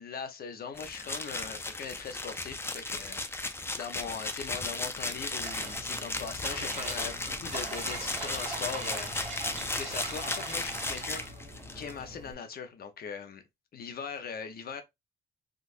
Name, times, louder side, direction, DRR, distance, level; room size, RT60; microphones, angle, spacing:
voice 1, 0.0-3.5 3.7-11.2 11.7-13.4 13.7-14.8, left 6 dB, 50° left, 0.8 m, -40 dB
sound 1, 0.7-11.9, left 2 dB, 10° left, 0.5 m, -36 dB
sound 2, 5.4-12.3, right 3 dB, 35° right, 1.4 m, -41 dB
3.8 x 2.5 x 2.5 m
cardioid pair, 90°, 20 cm